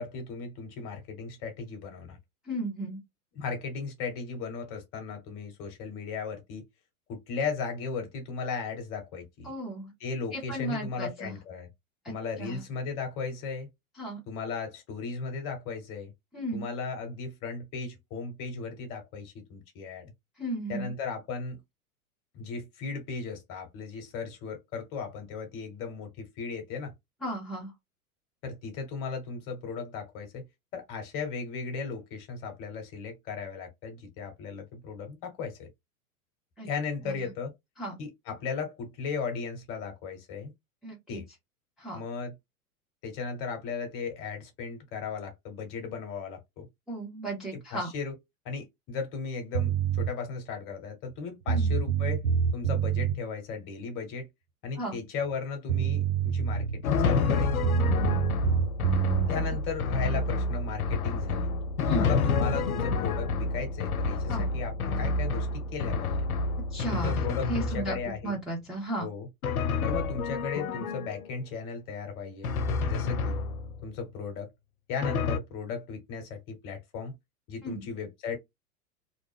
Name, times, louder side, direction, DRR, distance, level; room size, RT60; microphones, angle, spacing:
voice 1, 0.0-2.2 3.3-6.6 7.1-9.5 10.0-11.7 12.1-13.7 14.3-16.1 16.5-20.1 20.7-21.6 22.3-26.9 28.4-30.4 30.7-35.7 36.6-37.5 38.0-40.5 41.1-41.2 41.9-42.3 43.0-46.7 47.5-48.1 48.4-52.2 52.5-54.3 54.6-57.5 59.3-61.5 62.0-66.3 66.9-68.4 69.0-69.3 69.8-72.5 72.9-73.4 73.8-74.5 74.9-77.1 77.5-78.4, left 5 dB, 30° left, 1.0 m, -36 dB
voice 2, 2.4-3.0 9.4-9.9 10.3-11.3 12.0-12.1 12.4-12.6 14.0-14.2 16.3-16.7 20.4-20.9 27.2-27.7 36.6-36.7 37.0-37.3 37.8-37.9 40.8-41.2 41.8-42.0 46.9-47.9 51.5-51.7 54.7-55.0 59.3-59.4 61.8-62.1 64.3-64.5 66.7-67.2 67.5-69.1 77.6-77.9, right 1 dB, ahead, 0.5 m, -35 dB
sound 1, 49.5-50.1 51.1-51.2 51.5-53.2 55.3-55.4 55.7-56.9 57.6-59.3, right 7 dB, 80° right, 0.6 m, -26 dB
Drum, 56.8-68.2 69.4-71.4 72.4-73.9 75.0-75.4, left 3 dB, 75° left, 0.5 m, -29 dB
2.6 x 2.1 x 3.2 m
figure-of-eight pair, 95°, 44 cm